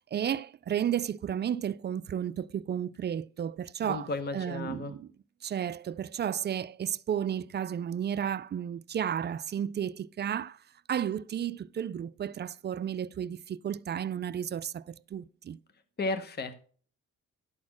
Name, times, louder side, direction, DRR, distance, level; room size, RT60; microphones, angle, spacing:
voice 1, 0.1-5.1 5.4-10.6 10.9-15.6, right 9 dB, 35° right, 0.4 m, -33 dB
voice 2, 3.8-4.9 16.0-16.6, left 3 dB, 35° left, 0.9 m, -34 dB
12.0 x 4.3 x 5.9 m
cardioid pair, 90°, 30 cm